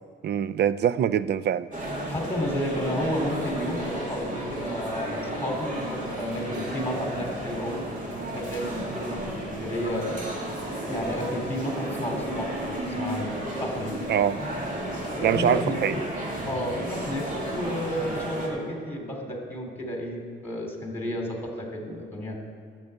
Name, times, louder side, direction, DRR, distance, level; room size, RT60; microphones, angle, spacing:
voice 1, 0.2-1.7 14.1-14.4 15.2-15.9, right 9 dB, 60° right, 16 dB, 0.4 m, -24 dB
sound 1, 1.7-18.5, right 1 dB, 40° right, 2.7 m, -33 dB
voice 2, 2.1-7.9 8.3-10.2 10.9-14.0 15.1-16.1 16.4-22.4, left 1 dB, 10° left, 1 dB, 3.0 m, -32 dB
10.5 x 7.5 x 8.1 m, 2.2 s
cardioid pair, 90°, 20 cm